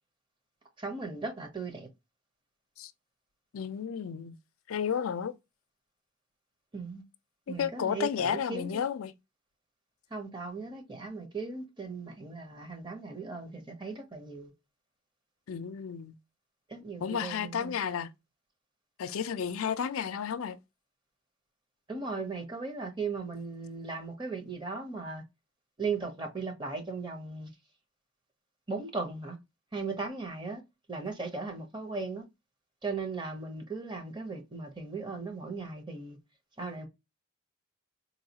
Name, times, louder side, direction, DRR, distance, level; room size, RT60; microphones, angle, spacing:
voice 1, 0.8-1.9 6.7-7.0 7.5-8.8 10.1-14.5 16.7-17.8 21.9-25.2 25.8-27.5 28.7-29.4 29.7-30.6 30.9-32.3 32.8-36.2 36.6-36.9, right 4 dB, 25° right, 0.8 m, -37 dB
voice 2, 3.5-4.4 4.7-5.3 7.5-9.1 15.5-16.1 17.0-18.1 19.0-20.6, left 7 dB, 85° left, 0.4 m, -32 dB
4.0 x 2.3 x 2.8 m
head